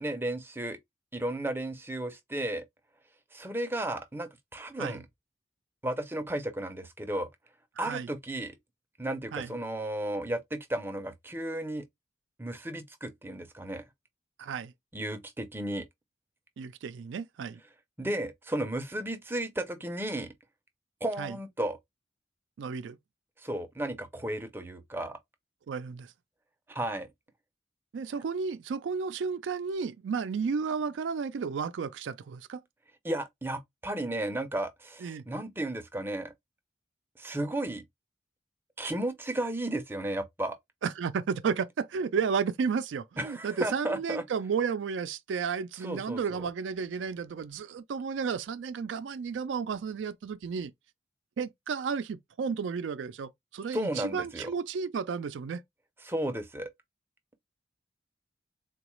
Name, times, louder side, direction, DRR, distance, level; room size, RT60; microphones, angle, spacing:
voice 1, 0.0-0.8 1.1-2.6 3.3-5.0 5.8-7.3 7.8-8.6 9.0-11.9 12.4-13.9 14.9-15.8 18.0-20.3 21.0-21.8 23.4-25.2 26.7-27.1 33.0-36.3 37.2-37.8 38.8-40.6 43.2-44.2 45.8-46.4 53.7-54.5 56.0-56.7, right 1 dB, 10° right, 0.5 m, -34 dB
voice 2, 7.8-8.1 9.3-9.5 14.4-14.7 16.6-17.6 21.2-21.4 22.6-23.0 25.7-26.1 27.9-32.6 35.0-35.2 40.8-50.7 51.4-55.6, right 6 dB, 85° right, 0.4 m, -32 dB
3.8 x 2.3 x 3.0 m
head